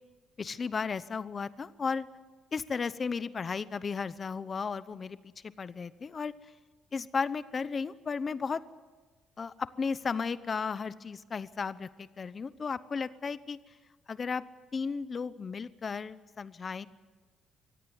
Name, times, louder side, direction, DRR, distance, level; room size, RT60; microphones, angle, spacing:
voice 1, 0.4-2.1 2.5-6.3 6.9-8.6 9.4-13.6 14.1-14.4 14.7-16.9, left 5 dB, 30° left, 15 dB, 0.8 m, -34 dB
24.0 x 17.0 x 9.5 m, 1.4 s
cardioid pair, 145°, 0 cm